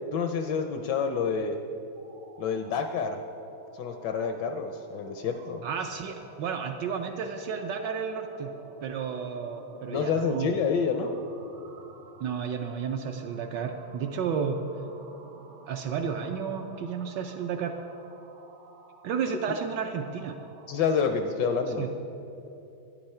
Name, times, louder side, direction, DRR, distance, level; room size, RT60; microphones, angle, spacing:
voice 1, 0.1-1.6 2.4-3.2 3.8-5.6 9.9-11.1 20.7-21.9, left 5 dB, 70° left, 6 dB, 1.1 m, -28 dB
sound 1, 1.9-21.3, right 3 dB, 50° right, 0.9 m, -51 dB
voice 2, 5.6-8.5 8.8-10.5 12.2-14.6 15.7-17.7 19.0-20.4 21.8-21.9, right 6 dB, 75° right, 5 dB, 1.1 m, -32 dB
11.5 x 10.0 x 4.3 m, 2.8 s
omnidirectional pair, 2.3 m